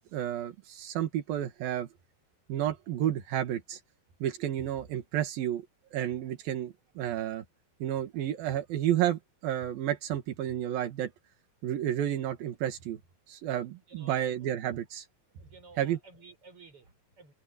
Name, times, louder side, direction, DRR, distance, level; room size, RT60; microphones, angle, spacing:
voice 1, 0.1-1.9 2.5-3.8 4.2-5.7 5.9-7.4 7.8-11.1 11.6-13.0 13.3-15.1 15.8-16.0, right 11 dB, 85° right, 3.5 m, -31 dB
voice 2, 13.9-14.6 15.4-17.3, right 4 dB, 40° right, 7.6 m, -54 dB
omnidirectional pair, 4.0 m